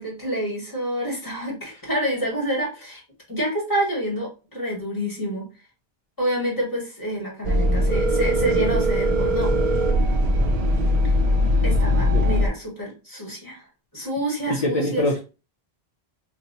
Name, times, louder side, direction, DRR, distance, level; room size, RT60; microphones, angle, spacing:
voice 1, 0.0-3.0 3.3-5.5 6.2-9.5 11.6-13.6 13.9-15.1, right 1 dB, 20° left, -3 dB, 1.7 m, -28 dB
sound 1, 7.4-12.5, left 1 dB, 50° right, 0.5 m, -21 dB
Telephone, 7.9-9.9, right 3 dB, 30° right, 1.6 m, -24 dB
voice 2, 14.5-15.2, left 2 dB, 45° left, 1 dB, 0.6 m, -23 dB
2.8 x 2.4 x 4.0 m, 0.31 s
omnidirectional pair, 1.0 m